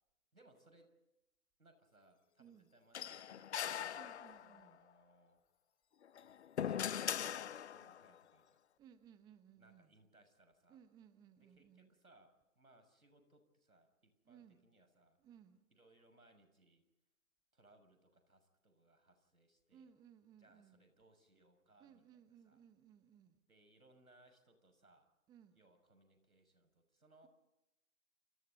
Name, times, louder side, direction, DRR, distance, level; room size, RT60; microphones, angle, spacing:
voice 1, 0.3-0.9 1.6-4.0 4.4-5.4 6.6-8.6 9.6-10.8 11.4-15.2 15.7-16.8 17.5-19.9 20.4-22.0 22.4-22.6 23.5-25.1 25.5-27.3, right 2 dB, 90° right, 7 dB, 6.6 m, -68 dB
voice 2, 2.4-2.7 3.9-4.8 8.8-10.0 10.7-11.9 14.2-14.6 15.2-15.7 19.7-20.9 21.8-23.4 25.3-25.6, right 8 dB, 10° right, 11 dB, 1.0 m, -63 dB
sound 1, 2.9-4.7 6.0-8.1, left 9 dB, 50° left, 0.8 m, -41 dB
29.0 x 29.0 x 4.1 m, 0.95 s
figure-of-eight pair, 135°, 42 cm